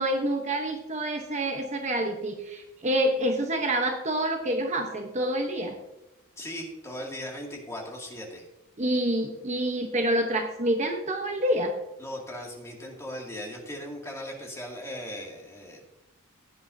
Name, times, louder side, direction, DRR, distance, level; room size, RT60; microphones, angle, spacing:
voice 1, 0.0-5.7 8.8-11.7, right 1 dB, 30° right, 3 dB, 0.9 m, -27 dB
voice 2, 6.4-8.4 12.0-15.8, equal, 15° left, -1 dB, 2.2 m, -38 dB
15.5 x 9.6 x 2.7 m, 0.94 s
head